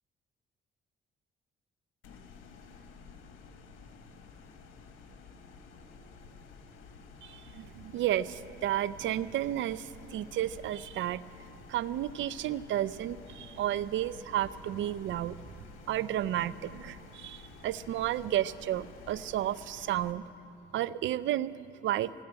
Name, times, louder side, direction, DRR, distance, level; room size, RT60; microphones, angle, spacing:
sound 1, 2.0-20.1, left 5 dB, 85° left, 1.3 m, -52 dB
voice 1, 7.2-11.2 11.7-15.4 15.9-20.2 20.7-22.1, right 12 dB, 75° right, 17 dB, 0.5 m, -32 dB
16.5 x 10.0 x 8.7 m, 2.6 s
cardioid pair, 90°, 20 cm